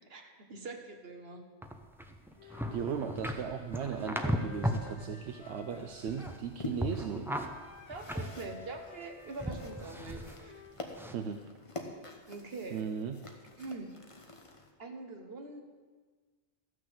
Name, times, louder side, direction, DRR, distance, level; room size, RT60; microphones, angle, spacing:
voice 1, 0.1-1.5 7.9-10.6 12.3-12.8 13.6-13.9 14.8-15.6, right 3 dB, 65° right, 4 dB, 1.5 m, -44 dB
sound 1, 1.6-4.9 5.3-6.5 6.8-9.1 9.4-10.4 10.9-11.2, equal, ahead, 0.7 m, -36 dB
Wind instrument woodwind instrument, 2.4-6.4 7.4-10.8, left 5 dB, 80° left, 1.3 m, -52 dB
voice 2, 2.4-7.3 11.1-11.5 12.7-13.2, right 7 dB, 80° right, 6 dB, 0.9 m, -37 dB
sound 2, 5.6-14.7, left 2 dB, 30° left, 1.1 m, -48 dB
13.5 x 6.4 x 7.7 m, 1.4 s
omnidirectional pair, 1.1 m